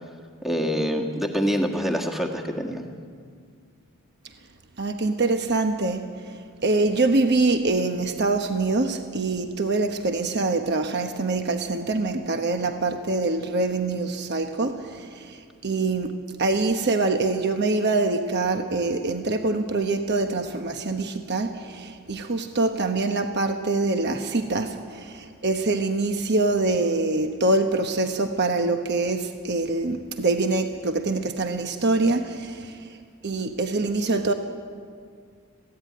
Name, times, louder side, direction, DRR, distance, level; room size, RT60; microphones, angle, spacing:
voice 1, 0.4-2.8, equal, ahead, 1 dB, 1.6 m, -25 dB
voice 2, 4.8-16.1 16.4-33.0 33.2-34.3, right 3 dB, 50° right, 6 dB, 1.0 m, -25 dB
21.5 x 16.0 x 9.3 m, 2.1 s
head